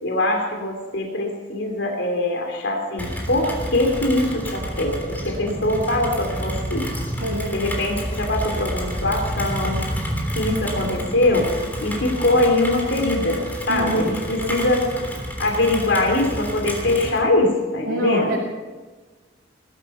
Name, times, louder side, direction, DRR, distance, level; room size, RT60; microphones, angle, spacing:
voice 1, 0.0-6.9 7.5-9.8 10.3-11.5 11.8-14.9 15.4-18.4, left 2 dB, 75° left, 2 dB, 3.0 m, -22 dB
Rain, 3.0-17.2, equal, 10° left, 3.3 m, -29 dB
voice 2, 5.5-5.9 7.2-7.6 13.7-14.7 17.9-18.4, right 1 dB, 85° right, -2 dB, 2.5 m, -27 dB
20.5 x 12.0 x 5.6 m, 1.3 s
head